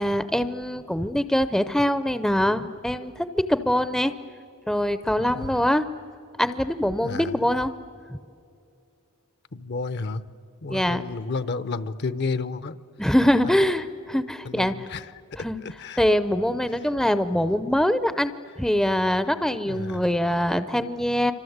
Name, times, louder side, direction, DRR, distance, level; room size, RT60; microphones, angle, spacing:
voice 1, 0.0-4.1 4.7-5.9 6.4-7.7 8.1-8.2 10.7-11.0 13.0-14.9 15.4-15.6 16.0-18.3 18.6-21.3, left 1 dB, 5° left, 12 dB, 0.6 m, -23 dB
voice 2, 5.3-5.7 7.0-7.3 9.5-10.2 10.6-12.8 13.4-13.6 14.4-15.1 15.6-16.0 19.7-20.1, left 3 dB, 50° left, 13 dB, 0.7 m, -31 dB
29.0 x 25.5 x 8.0 m, 2.4 s
head